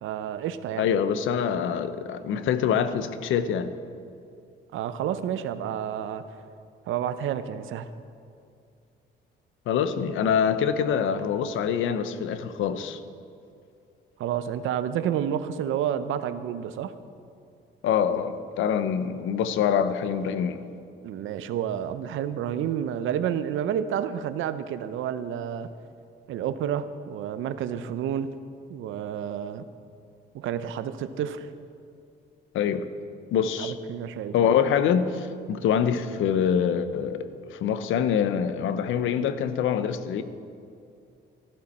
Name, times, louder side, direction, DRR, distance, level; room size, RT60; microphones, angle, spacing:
voice 1, 0.0-0.9 4.7-6.2 6.9-7.9 14.2-16.9 21.0-25.7 26.3-28.3 28.7-29.6 30.3-31.5 33.6-34.5, right 9 dB, 85° right, 0.7 m, -30 dB
voice 2, 0.8-3.7 9.7-13.0 17.8-20.6 32.5-32.9 33.3-33.7 34.3-40.2, left 8 dB, 80° left, 0.8 m, -25 dB
14.0 x 12.5 x 4.3 m
cardioid pair, 90°, 20 cm